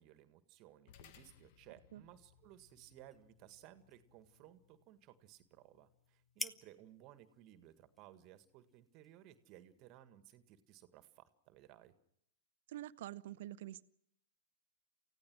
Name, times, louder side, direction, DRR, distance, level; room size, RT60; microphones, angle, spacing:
voice 1, 0.0-11.9, right 13 dB, 40° right, 11 dB, 1.8 m, -60 dB
sound 1, 0.9-9.5, left 9 dB, 50° left, 1.4 m, -68 dB
sound 2, 2.1-9.8, left 1 dB, 5° left, 1.0 m, -54 dB
voice 2, 12.7-13.8, right 14 dB, 60° right, 17 dB, 0.8 m, -46 dB
29.0 x 16.0 x 6.2 m, 0.75 s
figure-of-eight pair, 105°, 0 cm